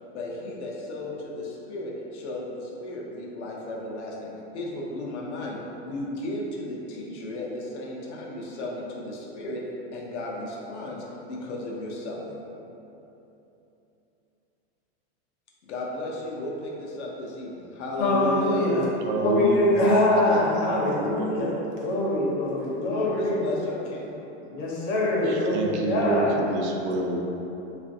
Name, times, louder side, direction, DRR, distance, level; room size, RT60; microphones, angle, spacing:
voice 1, 0.1-5.6 5.8-9.6 9.9-12.4 15.6-18.6 22.8-24.1, left 1 dB, 90° left, -2 dB, 0.7 m, -34 dB
voice 2, 18.0-18.8 19.2-21.5 21.8-23.5 24.5-26.3, left 1 dB, 50° left, -5 dB, 0.7 m, -23 dB
voice 3, 19.0-19.9 20.2-20.4 20.7-21.4 25.2-27.3, right 2 dB, 90° right, 1 dB, 0.5 m, -29 dB
3.3 x 2.5 x 2.6 m, 3.0 s
supercardioid pair, 175°, 34 cm